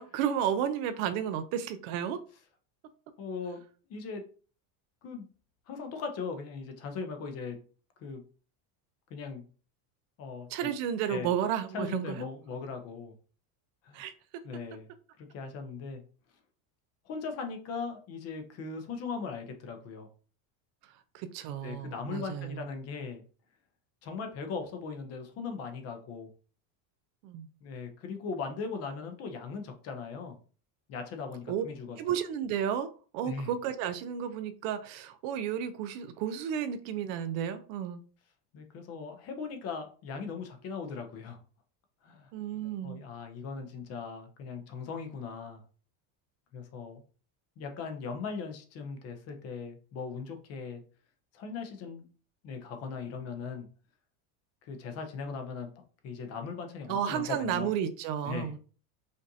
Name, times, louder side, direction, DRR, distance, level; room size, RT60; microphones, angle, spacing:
voice 1, 0.0-2.2 10.5-12.2 13.9-14.1 21.1-22.7 27.2-27.5 31.5-31.6 32.0-32.9 33.1-38.0 42.3-43.0 56.9-58.6, right 9 dB, 55° right, 11 dB, 0.5 m, -32 dB
voice 2, 3.2-3.6 3.9-4.2 5.0-5.3 5.7-7.6 8.0-8.2 9.1-9.4 10.2-10.5 11.1-11.3 11.7-13.1 13.8-14.0 14.4-14.9 15.2-16.0 17.1-20.1 21.6-23.2 24.0-26.3 27.6-30.4 30.9-32.0 33.2-33.5 38.5-41.4 42.0-42.3 42.8-45.6 46.5-47.0 47.6-50.8 51.3-52.1 52.4-53.7 54.6-55.7 56.0-57.7 58.2-58.5, left 5 dB, 35° left, 6 dB, 0.6 m, -39 dB
5.2 x 2.5 x 2.7 m, 0.40 s
cardioid pair, 170°, 45 cm